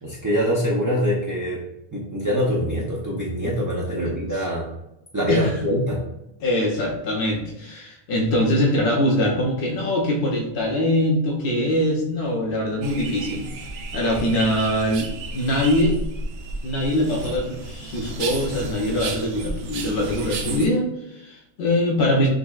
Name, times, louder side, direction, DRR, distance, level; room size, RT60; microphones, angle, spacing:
voice 1, 0.0-1.6 1.9-4.7 5.1-6.0, equal, 25° right, -5 dB, 0.5 m, -24 dB
voice 2, 6.4-13.5 13.9-15.1 15.3-16.0 16.6-22.3, left 1 dB, 55° left, -2 dB, 0.8 m, -23 dB
sound 1, 12.8-20.7, right 3 dB, 85° right, 0.9 m, -33 dB
6.1 x 2.1 x 2.3 m, 0.86 s
omnidirectional pair, 1.2 m